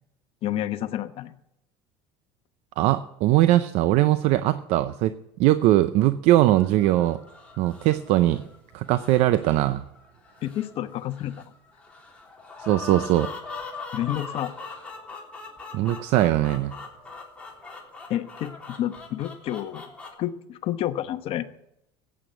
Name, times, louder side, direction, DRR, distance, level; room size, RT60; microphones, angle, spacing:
voice 1, 0.4-1.3 10.4-11.5 13.9-14.5 18.1-18.5 18.8-19.9 20.2-21.5, left 12 dB, 55° left, 9 dB, 1.1 m, -29 dB
voice 2, 2.8-5.1 5.4-7.2 7.6-8.4 8.7-9.8 12.6-13.3 15.7-16.8, right 15 dB, 65° right, 13 dB, 0.6 m, -21 dB
sound 1, 6.4-20.1, left 4 dB, 10° left, 3.4 m, -41 dB
15.0 x 9.0 x 7.9 m, 0.82 s
supercardioid pair, 120°, 12 cm